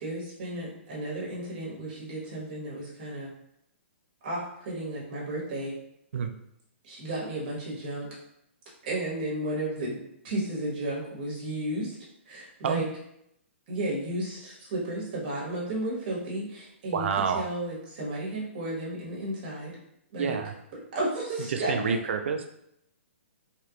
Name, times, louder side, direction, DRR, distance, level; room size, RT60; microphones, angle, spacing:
voice 1, 0.0-3.3 4.2-5.7 6.8-8.1 8.8-10.0 10.2-12.0 12.3-12.9 13.7-17.1 17.3-19.7 20.1-20.4 20.9-22.0, right 1 dB, 40° right, -5 dB, 1.3 m, -33 dB
voice 2, 16.9-17.4 20.2-20.6 21.5-22.5, right 6 dB, 65° right, 6 dB, 0.4 m, -28 dB
3.2 x 2.4 x 2.9 m, 0.77 s
hypercardioid pair, 165°, 7 cm